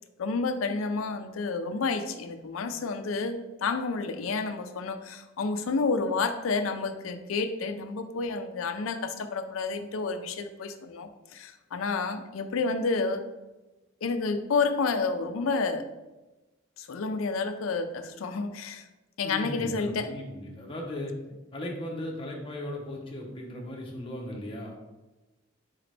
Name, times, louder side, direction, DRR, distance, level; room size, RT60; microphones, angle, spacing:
voice 1, 0.2-13.2 14.0-15.8 16.8-18.9 19.2-20.1, left 4 dB, 80° left, 9 dB, 0.4 m, -30 dB
voice 2, 19.2-21.1 21.5-24.7, left 1 dB, 25° left, -1 dB, 0.8 m, -37 dB
4.1 x 3.9 x 3.3 m, 1.1 s
head